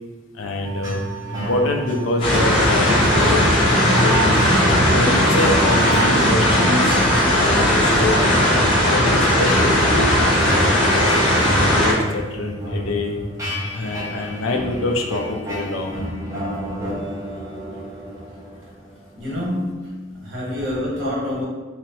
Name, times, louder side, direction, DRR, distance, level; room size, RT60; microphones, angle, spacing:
voice 1, 0.3-1.0 1.3-4.4 4.9-6.9 7.3-11.2 11.7-13.2 13.7-16.0, left 2 dB, 85° left, 3 dB, 0.4 m, -25 dB
sound 1, 0.6-19.4, right 1 dB, 15° right, 0.6 m, -29 dB
sound 2, 2.2-11.9, left 1 dB, 25° left, 0.6 m, -17 dB
voice 2, 19.2-21.4, left 1 dB, 75° right, -6 dB, 1.0 m, -27 dB
2.9 x 2.0 x 2.7 m, 1.3 s
head